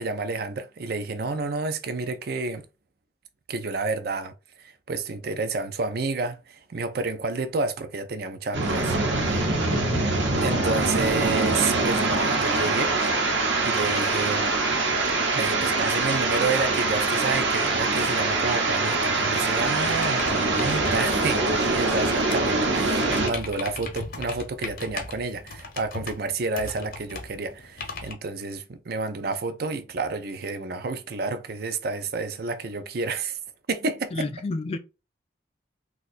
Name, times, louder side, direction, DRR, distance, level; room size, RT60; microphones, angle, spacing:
voice 1, 0.0-2.6 3.5-4.3 4.6-9.0 10.4-12.9 13.6-14.5 15.3-33.4 33.7-34.2, right 3 dB, 55° right, 0.5 m, -30 dB
sound 1, 8.5-23.3, right 3 dB, 80° right, 0.9 m, -24 dB
voice 2, 9.7-10.1 34.1-34.8, left 3 dB, 30° left, 0.3 m, -30 dB
sound 2, 19.8-28.1, left 3 dB, 50° left, 0.7 m, -38 dB
2.6 x 2.3 x 4.1 m
head